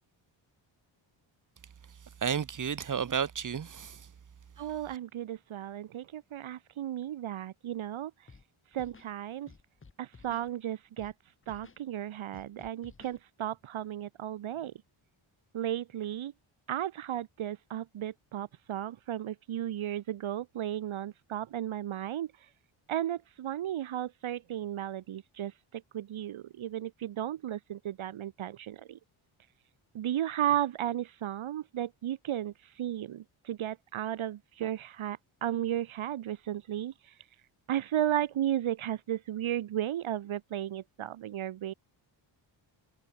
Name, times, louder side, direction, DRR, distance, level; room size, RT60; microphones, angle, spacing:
voice 1, 1.9-4.1 4.6-5.0, right 7 dB, 40° right, 1.9 m, -33 dB
voice 2, 4.6-8.1 8.7-9.5 10.0-11.1 11.5-14.7 15.5-16.3 16.7-22.3 22.9-29.0 29.9-36.9 37.7-41.7, right 11 dB, 70° right, 2.0 m, -34 dB
Scratching (performance technique), 8.3-8.4 8.7-9.1 9.5-10.5 11.0-11.1 11.4-11.8 12.3-13.2, left 4 dB, 25° left, 6.5 m, -54 dB
wide cardioid pair, 155°, 49 cm